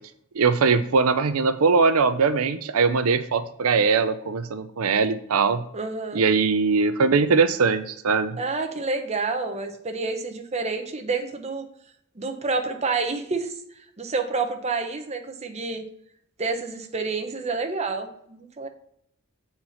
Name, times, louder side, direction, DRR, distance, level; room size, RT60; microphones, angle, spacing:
voice 1, 0.4-5.6 6.1-8.4, right 4 dB, 85° right, 11 dB, 0.5 m, -21 dB
voice 2, 5.7-6.2 8.4-11.7 12.1-15.8 16.4-18.7, right 3 dB, 30° right, 5 dB, 0.9 m, -29 dB
7.6 x 4.4 x 5.7 m, 0.71 s
head